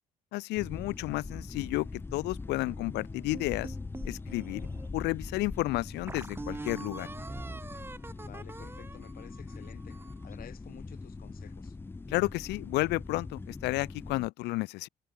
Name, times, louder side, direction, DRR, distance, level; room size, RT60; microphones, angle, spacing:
voice 1, 0.3-3.7 4.0-4.7 4.9-7.1 12.1-14.9, left 21 dB, 80° left, 0.5 m, -32 dB
sound 1, 0.6-14.3, left 3 dB, 15° left, 0.5 m, -42 dB
sound 2, 3.3-4.9 5.4-5.5 6.1-10.3, right 3 dB, 15° right, 0.8 m, -43 dB
voice 2, 8.2-11.8, left 11 dB, 60° left, 2.7 m, -52 dB
cardioid pair, 110°, 17 cm